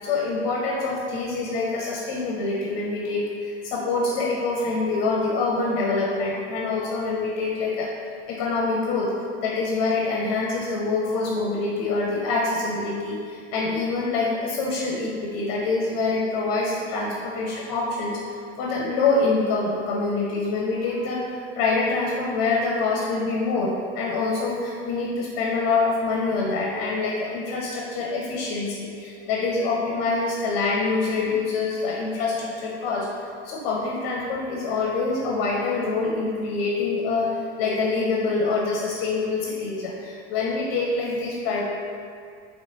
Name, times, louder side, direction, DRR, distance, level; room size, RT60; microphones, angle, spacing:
voice 1, 0.0-7.9 8.3-9.1 9.4-18.2 18.6-33.1 33.4-41.6, left 3 dB, 45° left, -2 dB, 0.7 m, -25 dB
5.8 x 2.1 x 3.8 m, 2.2 s
figure-of-eight pair, 75°, 35 cm